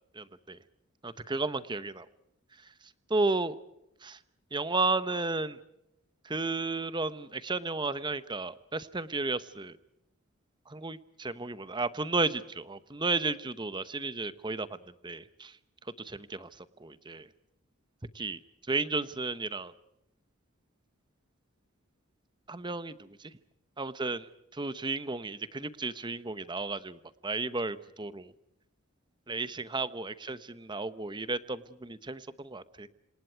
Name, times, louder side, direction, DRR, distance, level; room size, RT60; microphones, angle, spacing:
voice 1, 0.1-0.6 1.0-2.1 3.1-3.6 4.0-4.2 4.5-5.6 6.2-9.8 10.7-14.7 15.0-15.6 16.0-16.5 16.8-17.3 18.1-18.4 18.7-19.7 22.5-23.3 23.8-24.3 24.5-28.3 29.3-32.9, right 3 dB, 20° right, 13 dB, 0.9 m, -33 dB
27.5 x 27.0 x 4.6 m, 0.84 s
head